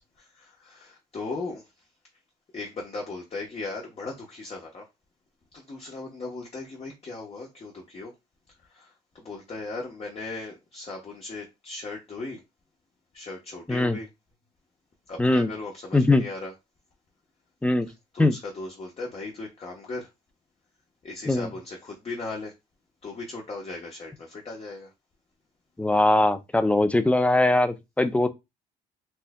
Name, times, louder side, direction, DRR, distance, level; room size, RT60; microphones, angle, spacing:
voice 1, 0.2-1.9 2.5-4.9 5.5-8.1 8.6-12.4 13.1-14.1 15.1-16.5 17.9-20.1 21.0-22.5 23.0-24.9, left 3 dB, 30° left, 1.0 m, -37 dB
voice 2, 15.9-16.2 17.6-17.9 18.2-18.3 21.3-21.5 25.8-28.3, left 2 dB, 5° left, 0.5 m, -21 dB
4.4 x 2.5 x 2.2 m
supercardioid pair, 85°, 19 cm